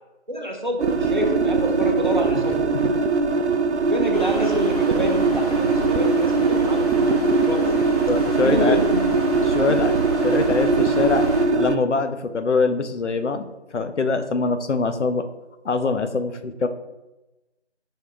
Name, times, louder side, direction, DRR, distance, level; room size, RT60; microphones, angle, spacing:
voice 1, 0.3-2.6 3.9-8.0 8.4-9.0 9.7-9.8, equal, 45° right, 1 dB, 0.7 m, -27 dB
sound 1, 0.8-11.8, right 4 dB, 80° right, 0.5 m, -21 dB
sound 2, 4.1-11.5, equal, 35° left, 0.6 m, -32 dB
voice 2, 8.1-8.8 9.5-9.9 10.2-11.3 11.6-15.3 15.6-16.7, left 4 dB, 90° left, 8 dB, 0.6 m, -23 dB
5.3 x 2.2 x 3.5 m, 1.0 s
figure-of-eight pair, 170°, 34 cm